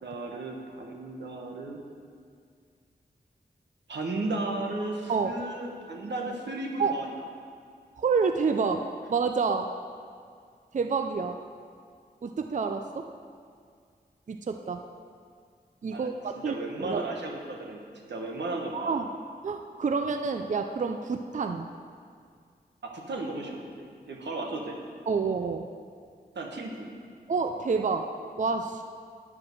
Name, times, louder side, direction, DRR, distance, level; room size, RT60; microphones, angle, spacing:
voice 1, 0.0-1.8 3.9-7.1 15.9-18.9 22.8-24.7 26.3-26.9, right 2 dB, 85° right, 0 dB, 1.0 m, -35 dB
voice 2, 8.0-9.7 10.7-11.4 12.2-13.1 14.3-14.8 15.8-17.0 18.7-19.1 19.4-21.7 25.1-25.7 27.3-28.1 28.4-28.8, right 5 dB, 45° right, 6 dB, 0.4 m, -28 dB
8.6 x 4.8 x 6.4 m, 2.1 s
cardioid pair, 40°, 18 cm